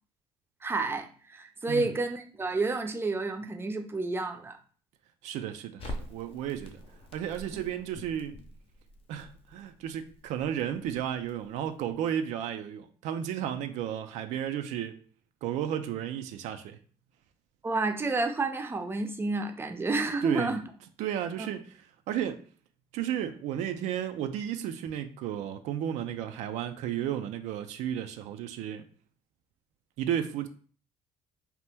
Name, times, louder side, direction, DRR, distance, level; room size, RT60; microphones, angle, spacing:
voice 1, 0.6-4.6 17.6-20.6 21.4-21.5, right 3 dB, 20° right, 0.5 m, -30 dB
voice 2, 5.2-6.8 7.1-8.4 9.1-15.0 15.4-16.8 20.2-20.5 21.0-21.6 22.1-22.4 22.9-28.9 30.0-30.5, right 10 dB, 85° right, 0.4 m, -33 dB
Crackle, 5.8-11.9, equal, 55° left, 0.7 m, -46 dB
2.8 x 2.1 x 3.4 m
cardioid pair, 85°, 12 cm